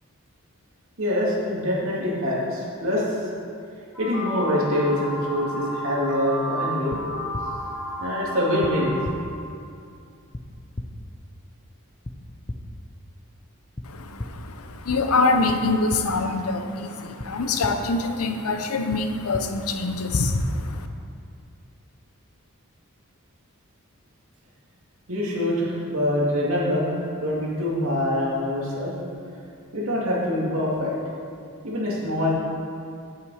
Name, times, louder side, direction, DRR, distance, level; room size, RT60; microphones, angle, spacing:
voice 1, 1.0-3.0 4.0-7.0 8.0-9.0 25.1-26.9 27.1-28.9 29.7-30.9 31.6-32.3, left 1 dB, 65° right, -5 dB, 2.6 m, -24 dB
sound 1, 3.9-9.0, equal, ahead, 1.4 m, -32 dB
sound 2, 6.9-7.0 7.3-7.4 8.6-8.7 9.0-9.1 10.3-10.4 10.8-10.9 12.0-12.1 12.5-12.6 13.8-13.9 14.2-14.3 15.5-15.6 15.9-16.0 17.2-17.3 17.6-17.7 18.9-19.0 19.3-19.4, left 1 dB, 20° left, 0.6 m, -32 dB
voice 2, 13.8-20.9, left 3 dB, 85° left, 7 dB, 0.7 m, -25 dB
8.4 x 8.1 x 4.9 m, 2.4 s
head